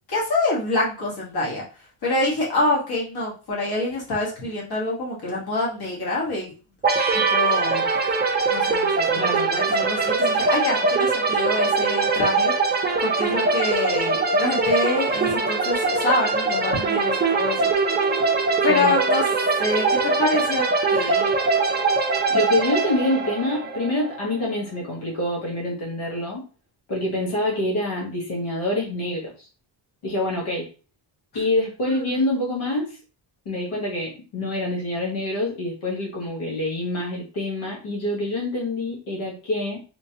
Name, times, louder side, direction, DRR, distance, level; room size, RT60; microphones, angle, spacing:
voice 1, 0.1-1.6 2.0-6.5 7.1-7.9 8.5-17.7 18.0-18.2 18.6-19.2 19.6-21.3 31.9-32.2, left 2 dB, 50° left, -5 dB, 1.6 m, -26 dB
sound 1, 6.8-24.4, right 3 dB, 20° right, 0.5 m, -22 dB
voice 2, 9.1-9.5 18.7-18.9 22.3-26.4 26.9-29.3 30.0-30.7 31.3-33.0 33.4-39.8, left 1 dB, 85° left, -3 dB, 1.2 m, -26 dB
3.2 x 3.0 x 2.8 m, 0.35 s
wide cardioid pair, 140°, 48 cm